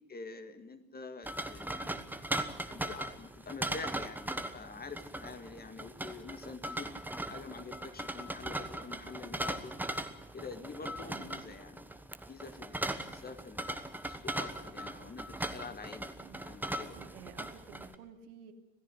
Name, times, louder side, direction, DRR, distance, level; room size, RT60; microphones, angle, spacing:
voice 1, 0.1-2.1 2.6-6.9 7.3-9.7 10.3-11.9 12.3-16.1 16.4-17.0, left 4 dB, 20° left, 9 dB, 1.8 m, -46 dB
sound 1, 1.2-17.9, right 1 dB, 5° right, 1.2 m, -39 dB
voice 2, 16.9-18.5, right 8 dB, 60° right, 5 dB, 2.7 m, -52 dB
26.5 x 17.5 x 6.3 m, 0.90 s
figure-of-eight pair, 75°, 49 cm